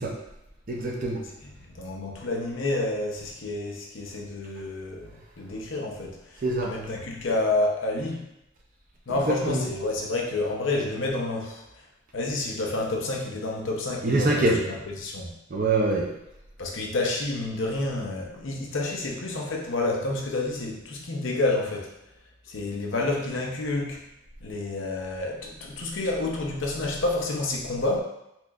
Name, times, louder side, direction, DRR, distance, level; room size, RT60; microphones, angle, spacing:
voice 1, 0.7-1.2 6.4-6.7 9.3-9.6 14.0-14.6 15.5-16.1, right 2 dB, 45° right, 0 dB, 0.5 m, -24 dB
voice 2, 1.7-8.3 9.1-11.6 12.1-15.3 16.6-21.9 22.5-24.0 24.4-28.0, left 2 dB, 80° left, 0 dB, 0.7 m, -29 dB
4.3 x 2.9 x 2.4 m, 0.86 s
head